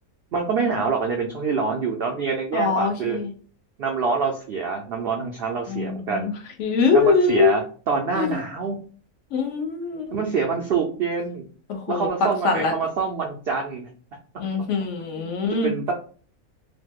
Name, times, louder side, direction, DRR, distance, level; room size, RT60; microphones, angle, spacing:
voice 1, 0.3-3.2 3.8-6.3 6.9-7.6 7.9-8.8 10.1-11.5 11.9-13.9 15.0-15.9, right 5 dB, 70° right, 1 dB, 0.5 m, -26 dB
voice 2, 2.5-3.3 5.7-6.3 6.6-7.5 8.1-8.4 9.3-10.2 11.7-12.7 14.4-15.7, left 4 dB, 65° left, 4 dB, 0.9 m, -23 dB
3.0 x 2.0 x 3.4 m, 0.41 s
omnidirectional pair, 1.5 m